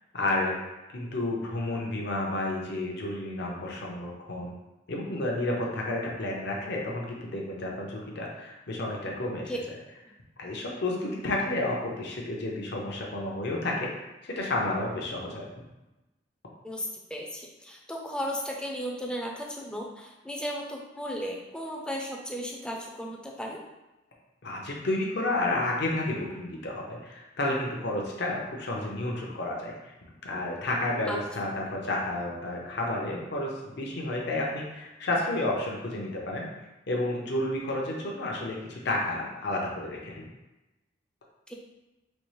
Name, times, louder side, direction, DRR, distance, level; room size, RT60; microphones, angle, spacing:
voice 1, 0.1-0.6 0.9-4.5 4.9-9.5 10.4-15.5 24.4-29.9 30.2-36.5 36.9-40.3, left 2 dB, 65° left, -2 dB, 0.7 m, -31 dB
voice 2, 16.6-23.6 31.1-31.2 41.5-41.6, equal, 5° left, -1 dB, 0.4 m, -35 dB
4.3 x 2.3 x 3.1 m, 1.0 s
head